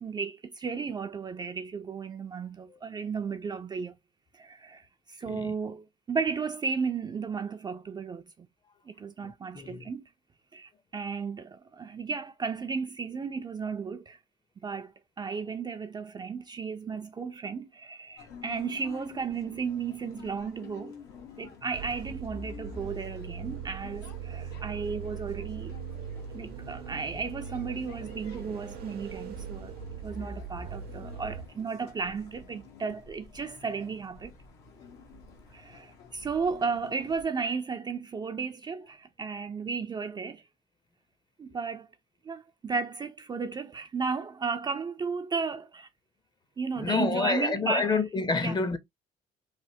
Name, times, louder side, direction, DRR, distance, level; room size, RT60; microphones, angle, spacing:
voice 1, 0.0-4.0 4.3-8.5 8.9-10.0 10.5-14.2 14.6-20.9 21.4-25.7 26.3-29.7 30.0-34.3 35.5-40.4 41.4-41.9 42.2-45.9 46.6-48.0 48.4-48.6, right 5 dB, 25° right, 0.3 m, -34 dB
voice 2, 9.2-9.9 46.8-48.8, left 4 dB, 25° left, 0.5 m, -29 dB
sound 1, 18.2-37.2, left 6 dB, 85° left, 0.9 m, -50 dB
sound 2, 21.7-31.5, right 6 dB, 65° right, 0.6 m, -40 dB
3.2 x 2.1 x 2.6 m
cardioid pair, 110°, 17 cm